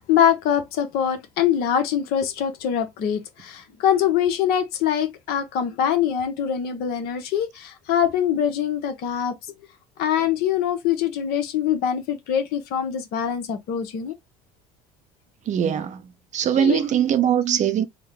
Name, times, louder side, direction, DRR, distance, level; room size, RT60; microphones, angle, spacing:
voice 1, 0.0-9.4 10.0-14.1 16.5-16.8, left 9 dB, 65° left, 1.0 m, -23 dB
voice 2, 15.5-16.0 16.3-17.8, right 9 dB, 45° right, 0.6 m, -21 dB
3.6 x 2.1 x 3.4 m
hypercardioid pair, 80°, 17 cm